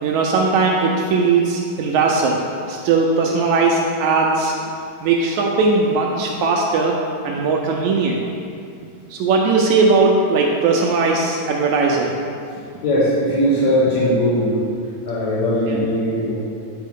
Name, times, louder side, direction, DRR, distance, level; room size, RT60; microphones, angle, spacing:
voice 1, 0.0-2.4 2.7-4.5 5.0-7.0 7.2-8.2 9.1-12.1 15.7-15.8, right 4 dB, 80° right, -1 dB, 1.8 m, -18 dB
voice 2, 12.8-14.6 15.1-16.3, equal, 70° left, -10 dB, 2.3 m, -19 dB
9.1 x 4.5 x 3.5 m, 2.4 s
omnidirectional pair, 3.5 m